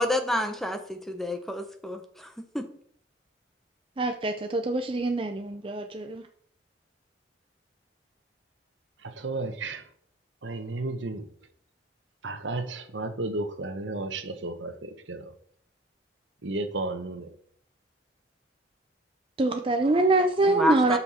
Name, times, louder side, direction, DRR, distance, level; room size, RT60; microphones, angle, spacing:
voice 1, 0.0-2.7 20.4-21.0, left 1 dB, ahead, 0.9 m, -29 dB
voice 2, 4.0-6.2 19.4-21.0, right 2 dB, 30° right, 0.5 m, -24 dB
voice 3, 9.2-9.8 10.4-11.2 12.2-14.7 15.1-15.2 16.4-17.3, right 2 dB, 85° right, 1.1 m, -32 dB
12.0 x 5.7 x 4.3 m
head